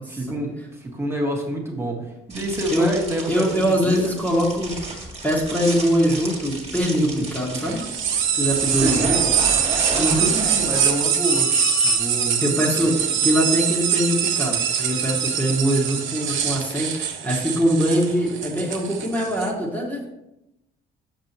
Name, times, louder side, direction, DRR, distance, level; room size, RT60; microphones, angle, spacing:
voice 1, 0.1-4.1 7.0-7.3 8.8-9.3 9.9-11.5 11.8-12.4, right 1 dB, 10° right, 0 dB, 1.5 m, -28 dB
sound 1, 2.3-12.0, right 1 dB, 30° right, 1.8 m, -31 dB
voice 2, 3.3-4.7 5.2-7.8 8.3-9.1 10.0-10.3 12.4-20.1, equal, 10° left, -3 dB, 1.5 m, -22 dB
sound 2, 7.5-19.5, right 8 dB, 75° right, 0.8 m, -23 dB
6.8 x 5.3 x 2.9 m, 0.89 s
cardioid pair, 90°, 20 cm